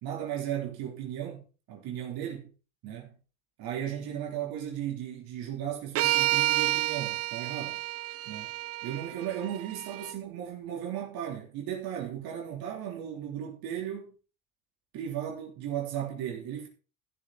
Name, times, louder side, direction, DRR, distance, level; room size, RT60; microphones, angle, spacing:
voice 1, 0.0-2.5 2.8-3.2 3.6-7.8 8.3-8.5 8.8-14.1 14.9-16.7, right 10 dB, 70° right, 3.3 m, -36 dB
sound 1, 5.9-10.1, right 15 dB, 40° right, 0.4 m, -30 dB
14.5 x 7.1 x 4.0 m
supercardioid pair, 75°, 38 cm